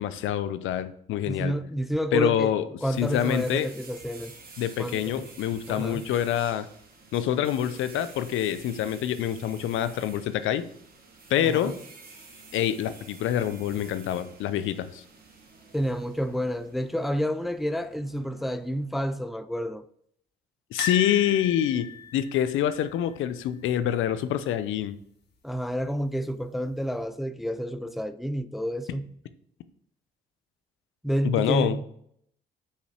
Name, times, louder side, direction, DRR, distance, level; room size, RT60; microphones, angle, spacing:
voice 1, 0.0-1.5 2.1-2.6 3.0-3.7 4.6-6.7 7.1-10.6 11.3-11.7 12.5-15.0 20.7-25.0 31.2-31.8, left 10 dB, 80° left, 0.6 m, -26 dB
voice 2, 1.3-2.5 2.8-4.3 4.8-5.2 5.7-6.1 11.4-11.8 15.7-19.8 25.4-29.1 31.0-31.8, equal, ahead, 0.4 m, -29 dB
sound 1, 2.8-18.8, right 4 dB, 50° right, 1.5 m, -50 dB
sound 2, 20.8-23.8 24.1-24.3 24.6-24.7 25.9-26.4 26.9-27.0, left 7 dB, 55° left, 1.5 m, -36 dB
5.5 x 5.0 x 4.3 m
cardioid pair, 90°, 20 cm